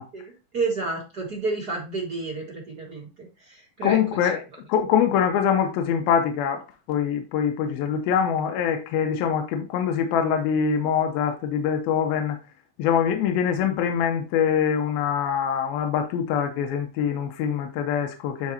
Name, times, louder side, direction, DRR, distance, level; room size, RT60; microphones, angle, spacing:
voice 1, 0.1-4.0, right 3 dB, 45° right, 1.2 m, -30 dB
voice 2, 3.8-4.4 4.7-6.6 6.9-12.4 12.8-18.5, left 8 dB, 80° left, 2.7 m, -24 dB
9.7 x 4.6 x 2.8 m
omnidirectional pair, 4.3 m